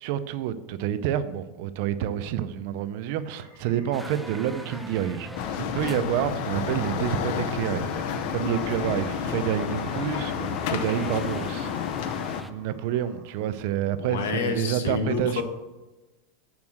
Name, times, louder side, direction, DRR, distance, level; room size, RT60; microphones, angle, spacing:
voice 1, 0.0-5.3 5.6-11.7 12.5-15.4, right 10 dB, 50° right, 0.5 m, -28 dB
sound 1, 3.1-14.2, right 1 dB, 15° left, 3.0 m, -44 dB
sound 2, 3.9-12.5, equal, ahead, 0.3 m, -42 dB
sound 3, 5.3-12.4, left 9 dB, 50° left, 0.6 m, -30 dB
voice 2, 14.0-15.4, left 5 dB, 85° left, 1.4 m, -28 dB
7.1 x 6.2 x 6.4 m
supercardioid pair, 170°, 0 cm